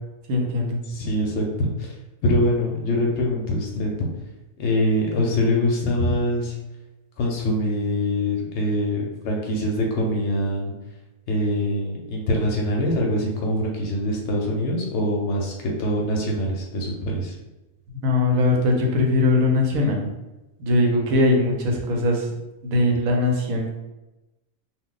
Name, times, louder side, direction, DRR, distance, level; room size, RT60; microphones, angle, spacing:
voice 1, 0.3-0.8 6.0-6.1 18.0-20.1 20.6-22.3 22.6-23.7, left 2 dB, 80° right, 0 dB, 1.1 m, -20 dB
voice 2, 0.9-1.7 2.2-4.1 4.6-6.5 7.2-10.7 11.3-17.3, left 1 dB, 65° left, 0 dB, 0.8 m, -24 dB
2.4 x 2.1 x 3.7 m, 1.0 s
omnidirectional pair, 1.4 m